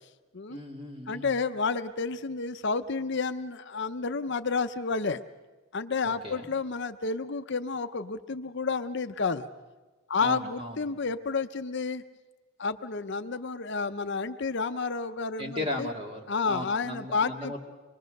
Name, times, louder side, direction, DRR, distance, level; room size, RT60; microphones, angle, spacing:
voice 1, 0.5-1.3 6.0-6.5 10.2-10.8 15.4-17.6, left 1 dB, 25° right, 2 dB, 2.5 m, -37 dB
voice 2, 1.1-5.2 5.7-9.5 10.1-12.0 12.6-15.9 16.3-17.6, left 4 dB, 55° left, 9 dB, 0.7 m, -30 dB
25.5 x 21.5 x 6.6 m, 1.2 s
head